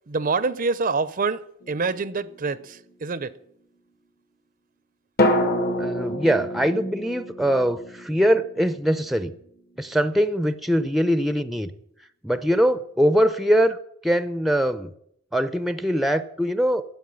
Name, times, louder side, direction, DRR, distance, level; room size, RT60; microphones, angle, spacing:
voice 1, 0.1-3.3, right 4 dB, 45° right, 0.6 m, -26 dB
sound 1, 1.6-2.8 5.2-9.2 9.4-9.5, left 1 dB, 50° left, 1.7 m, -27 dB
voice 2, 5.8-9.3 9.8-11.7 12.2-13.8 14.0-14.9 15.3-16.8, equal, ahead, 0.6 m, -22 dB
12.5 x 8.1 x 9.5 m
head